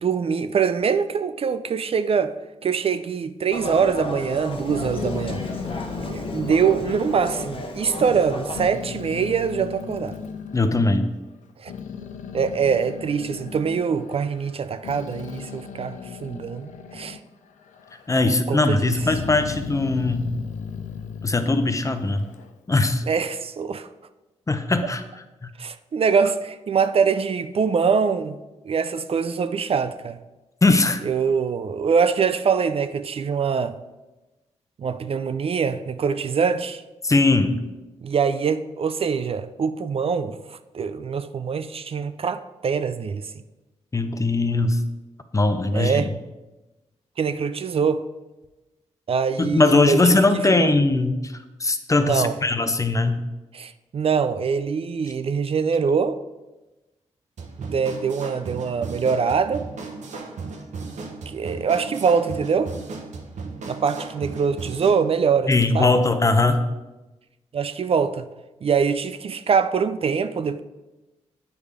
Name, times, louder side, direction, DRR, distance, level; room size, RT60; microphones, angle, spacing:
voice 1, 0.0-2.3 2.6-5.4 6.1-10.2 11.6-11.7 12.3-17.2 18.5-19.0 23.1-23.9 25.6-28.4 28.7-30.2 31.0-33.8 34.8-36.8 38.0-40.4 40.7-43.3 45.7-46.1 47.2-48.0 49.1-50.7 52.0-52.3 53.5-56.2 57.6-59.7 61.3-62.7 63.6-65.9 67.5-68.3 68.6-70.6, right 6 dB, 50° right, 0.4 m, -23 dB
sound 1, 3.5-8.7, left 2 dB, 45° left, 1.0 m, -33 dB
Growling, 4.5-8.2 8.5-10.9 11.4-17.3 17.6-18.3 18.8-22.5, left 6 dB, 85° left, 0.5 m, -36 dB
voice 2, 10.5-11.1 18.1-20.3 21.2-22.2 22.7-23.0 24.5-25.0 25.4-25.5 30.6-31.0 37.0-37.6 43.9-44.8 45.3-46.1 49.4-53.2 65.5-66.6, left 2 dB, 25° left, 0.7 m, -20 dB
sound 2, 57.4-65.1, right 4 dB, 75° right, 0.9 m, -36 dB
8.2 x 3.3 x 4.9 m
cardioid pair, 55°, 12 cm